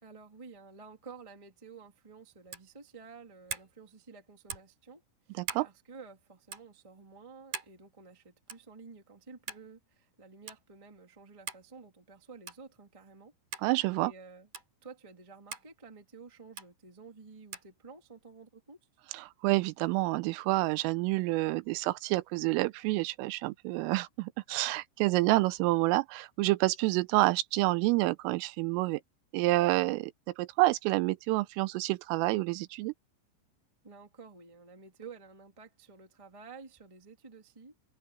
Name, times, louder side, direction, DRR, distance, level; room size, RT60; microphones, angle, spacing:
voice 1, 0.0-13.3 14.0-14.5 14.8-18.8 33.8-37.7, right 4 dB, 65° right, 0.3 m, -51 dB
sound 1, 2.5-2.7 3.5-3.7 4.5-4.8 5.4-5.7 6.5-6.7 7.5-7.8 8.5-8.7 9.5-9.7 10.5-10.6 11.5-11.7 12.5-12.7 13.5-13.7 14.5-14.7 15.5-15.7 16.6-16.7 17.5-17.7, right 7 dB, 45° right, 4.1 m, -41 dB
voice 2, 13.6-14.1 19.1-29.0 29.3-30.1 30.4-32.9, right 20 dB, 85° right, 3.2 m, -28 dB
omnidirectional pair, 5.9 m